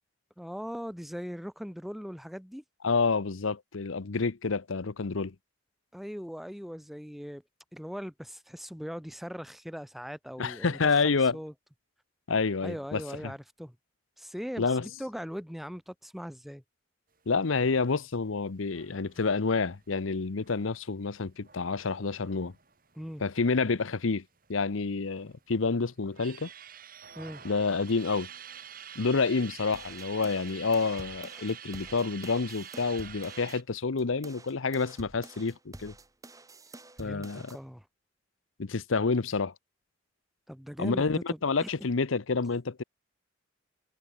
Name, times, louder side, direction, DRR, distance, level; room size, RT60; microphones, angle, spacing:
voice 1, 0.4-2.6 5.9-7.4 7.7-11.5 12.6-13.7 14.2-16.6 22.9-23.2 27.2-27.4 37.0-37.9 40.5-41.7, equal, ahead, 0.7 m, -40 dB
voice 2, 2.8-5.3 10.4-11.4 12.3-13.3 14.6-14.9 17.3-22.5 23.2-24.2 24.5-26.5 27.4-28.3 29.0-35.9 37.0-37.6 38.6-39.5 40.8-42.8, left 4 dB, 85° left, 0.8 m, -28 dB
sound 1, 18.7-23.8 24.1-24.2 24.4-25.4 25.8-33.6, right 8 dB, 45° right, 3.7 m, -47 dB
sound 2, 29.7-33.6 34.0-37.6, right 2 dB, 15° right, 3.3 m, -49 dB
head